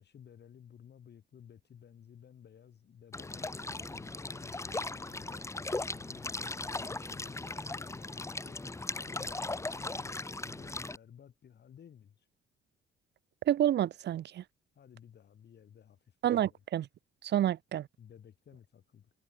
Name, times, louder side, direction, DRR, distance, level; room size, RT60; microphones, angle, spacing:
voice 1, 0.0-8.6 9.0-12.3 14.7-16.6 18.0-19.1, left 8 dB, 55° left, 6.4 m, -55 dB
sound 1, 3.1-11.0, left 2 dB, 15° left, 1.1 m, -38 dB
voice 2, 13.5-14.4 16.2-16.9 17.3-17.9, right 11 dB, 60° right, 0.7 m, -28 dB
cardioid pair, 90°, 20 cm